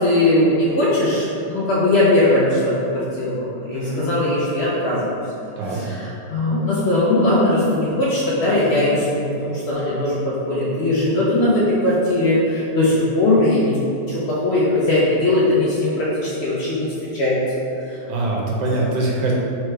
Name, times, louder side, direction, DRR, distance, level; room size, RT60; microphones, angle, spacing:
voice 1, 0.0-5.1 5.7-13.8 14.1-17.4 17.9-18.0, left 1 dB, 75° left, -7 dB, 0.6 m, -19 dB
voice 2, 3.7-4.0 5.6-5.8 18.1-19.3, right 2 dB, 80° right, -3 dB, 1.3 m, -23 dB
3.3 x 3.3 x 3.3 m, 2.6 s
omnidirectional pair, 1.9 m